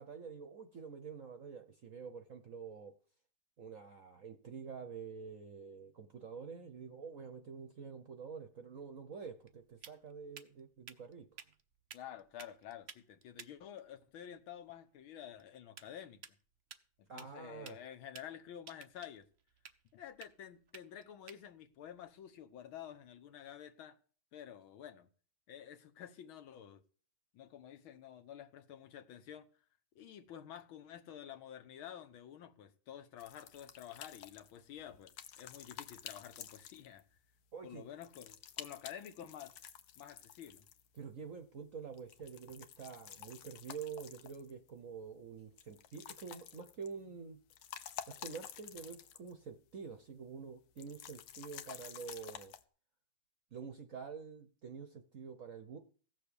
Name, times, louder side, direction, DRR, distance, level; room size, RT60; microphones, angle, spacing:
voice 1, 0.0-2.9 3.6-11.3 17.1-17.8 37.5-37.8 40.9-47.4 48.1-52.5 53.5-55.8, right 6 dB, 55° right, 0.9 m, -47 dB
sound 1, 8.5-23.3, right 7 dB, 90° right, 0.5 m, -58 dB
voice 2, 11.9-16.2 17.0-19.3 19.9-24.0 24.3-25.1 25.5-26.8 27.3-29.5 30.0-37.1 37.6-39.5 40.0-40.6, left 10 dB, 75° left, 1.8 m, -50 dB
sound 2, 33.2-37.2 38.0-41.0 41.9-44.7 45.6-47.0 47.4-49.4 49.7-49.8 50.8-52.6, left 10 dB, 90° left, 1.7 m, -51 dB
15.5 x 6.7 x 6.9 m
omnidirectional pair, 2.3 m